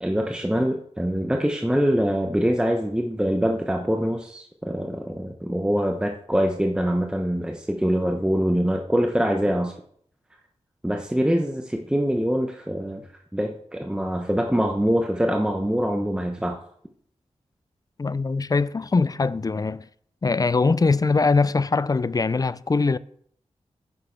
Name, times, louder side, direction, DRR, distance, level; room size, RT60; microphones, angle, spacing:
voice 1, 0.0-9.7 10.8-13.0 13.3-16.6, equal, 5° right, 0.9 m, -24 dB
voice 2, 18.0-19.8 20.2-23.0, left 4 dB, 35° left, 0.4 m, -22 dB
9.8 x 6.6 x 4.5 m
wide cardioid pair, 65°, 12 cm